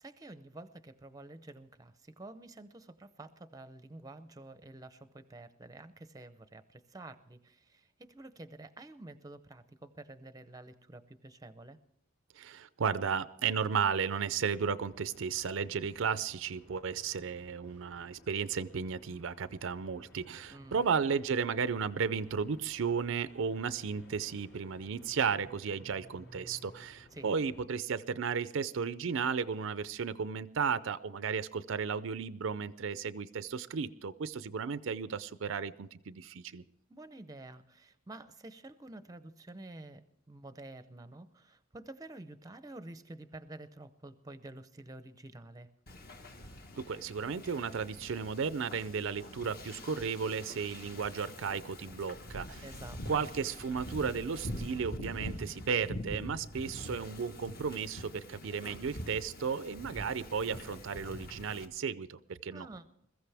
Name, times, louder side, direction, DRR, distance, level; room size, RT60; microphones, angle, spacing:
voice 1, 0.0-11.8 20.5-20.8 27.1-27.3 36.9-45.7 52.6-53.3 62.5-62.8, right 2 dB, 20° right, 12 dB, 0.6 m, -49 dB
voice 2, 12.4-36.6 46.8-52.6 53.1-62.7, right 6 dB, 65° right, 15 dB, 0.5 m, -34 dB
sound 1, 14.4-27.6, left 1 dB, 70° left, 4.9 m, -58 dB
Wind / Ocean, 45.9-61.6, left 1 dB, 45° left, 1.4 m, -45 dB
21.5 x 14.5 x 3.4 m, 0.75 s
head